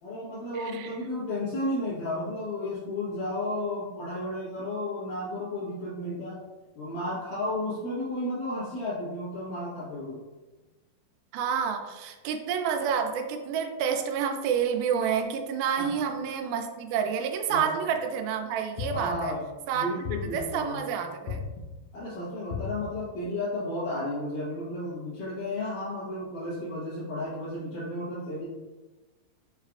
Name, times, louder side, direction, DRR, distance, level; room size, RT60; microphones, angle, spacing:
voice 1, 0.0-6.4 6.8-10.2 15.8-16.0 17.5-17.7 18.9-19.5 19.7-21.0 21.9-28.4, left 1 dB, 65° left, -12 dB, 2.7 m, -33 dB
voice 2, 0.6-0.9 11.3-19.3 19.7-21.5, right 7 dB, 85° right, 5 dB, 2.3 m, -29 dB
sound 1, 18.8-19.4 20.0-20.7 21.3-21.9 22.5-23.1, left 5 dB, 85° left, 1.7 m, -36 dB
6.5 x 3.2 x 2.3 m, 1.2 s
omnidirectional pair, 4.3 m